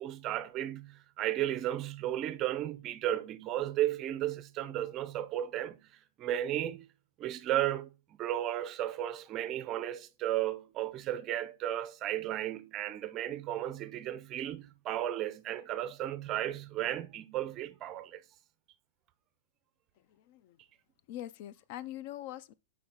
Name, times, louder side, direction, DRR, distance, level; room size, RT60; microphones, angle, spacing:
voice 1, 0.0-6.9 7.2-18.2, right 12 dB, 25° right, 0.5 m, -34 dB
voice 2, 20.1-20.6 21.1-22.5, left 13 dB, 45° left, 0.4 m, -43 dB
7.1 x 4.7 x 3.6 m
supercardioid pair, 160°, 0 cm